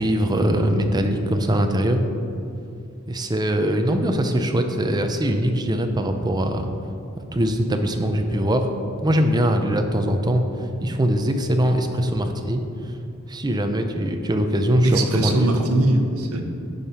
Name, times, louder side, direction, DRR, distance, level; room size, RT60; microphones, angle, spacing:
voice 1, 0.0-2.0 3.1-6.7 7.3-8.7 9.0-10.4 10.8-12.6 13.3-15.7, right 1 dB, 20° right, 5 dB, 0.6 m, -22 dB
voice 2, 14.8-16.4, right 1 dB, 85° right, 4 dB, 1.0 m, -21 dB
10.5 x 5.6 x 4.3 m, 2.6 s
head